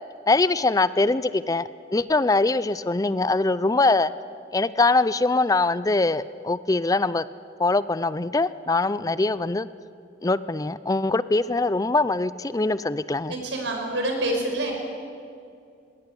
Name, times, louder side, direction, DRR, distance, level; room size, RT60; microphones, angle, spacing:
voice 1, 0.3-4.1 4.5-7.2 7.6-9.7 10.2-13.3, left 3 dB, 20° left, 16 dB, 0.4 m, -22 dB
voice 2, 13.3-14.7, right 1 dB, 90° right, 2 dB, 5.1 m, -27 dB
19.5 x 17.5 x 9.9 m, 2.4 s
head